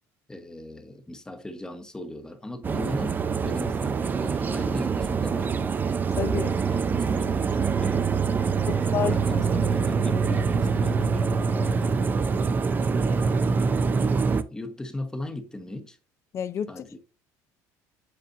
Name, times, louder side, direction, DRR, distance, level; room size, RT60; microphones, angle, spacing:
voice 1, 0.3-5.6 6.7-8.1 8.4-11.2 13.9-16.0 16.7-17.0, left 1 dB, 10° left, 1.0 m, -38 dB
sound 1, 2.6-14.4, right 5 dB, 25° right, 0.5 m, -25 dB
voice 2, 6.2-6.6 8.7-9.4 16.3-16.7, left 8 dB, 40° left, 0.5 m, -29 dB
7.7 x 5.3 x 2.6 m
cardioid pair, 115°, 7 cm